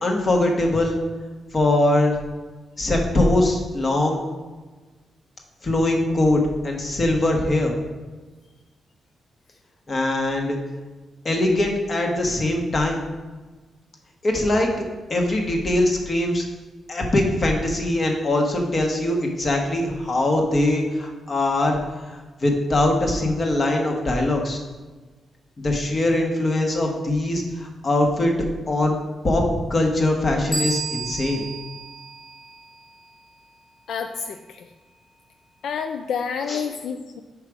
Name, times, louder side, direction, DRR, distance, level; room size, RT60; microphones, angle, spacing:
voice 1, 0.0-1.0 1.5-2.2 2.8-4.2 5.6-7.7 9.9-10.6 11.2-13.0 14.2-14.7 15.1-16.5 16.9-21.8 22.1-24.6 25.6-28.3 28.7-29.0 29.2-29.4 29.7-31.4 36.5-36.6, left 1 dB, 35° left, 2 dB, 1.1 m, -22 dB
sound 1, 30.5-33.0, right 4 dB, 20° right, 0.8 m, -32 dB
voice 2, 33.9-34.7 35.6-37.2, left 6 dB, 75° left, 6 dB, 0.3 m, -29 dB
5.7 x 4.8 x 4.8 m, 1.3 s
cardioid pair, 125°, 0 cm